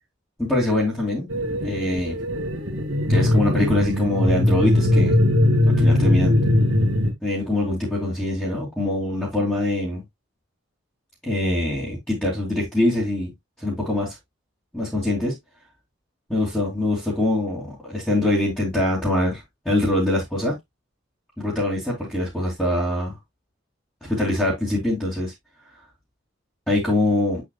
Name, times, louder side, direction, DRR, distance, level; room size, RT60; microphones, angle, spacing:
voice 1, 0.4-1.3 1.6-2.2 3.1-5.2 5.7-6.4 7.2-10.0 11.2-13.3 13.6-14.1 14.7-15.3 16.3-20.5 21.4-23.1 24.0-25.3 26.7-27.4, left 1 dB, 5° left, 2.7 m, -23 dB
sound 1, 1.3-7.1, left 1 dB, 70° right, 2.1 m, -20 dB
8.1 x 6.3 x 2.3 m
head